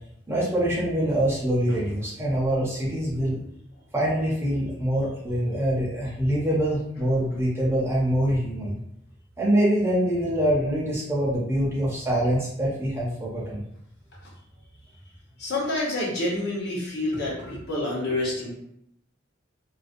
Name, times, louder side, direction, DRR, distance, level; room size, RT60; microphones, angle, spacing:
voice 1, 0.3-3.4 3.9-8.8 9.4-13.6, right 1 dB, 15° right, -6 dB, 0.6 m, -24 dB
voice 2, 15.4-18.5, left 1 dB, 60° left, -4 dB, 0.9 m, -28 dB
2.4 x 2.1 x 2.5 m, 0.74 s
head